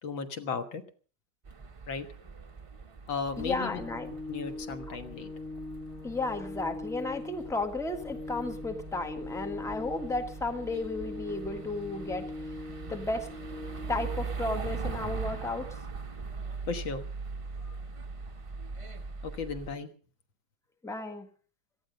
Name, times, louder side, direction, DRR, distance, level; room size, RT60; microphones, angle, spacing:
voice 1, 0.0-0.8 1.9-2.1 3.1-3.8 4.3-5.3 16.7-17.1 19.2-19.9, left 5 dB, 90° left, 8 dB, 2.3 m, -35 dB
sound 1, 1.4-19.7, right 5 dB, 55° right, 0.3 m, -41 dB
Organ, 3.4-14.3, left 2 dB, 55° left, 1.2 m, -42 dB
voice 2, 3.4-4.1 4.9-5.0 6.0-12.3 12.9-13.3 13.9-15.7 17.6-17.8 20.8-21.3, left 2 dB, ahead, 6 dB, 1.5 m, -33 dB
17.5 x 14.0 x 5.2 m, 0.39 s
omnidirectional pair, 2.1 m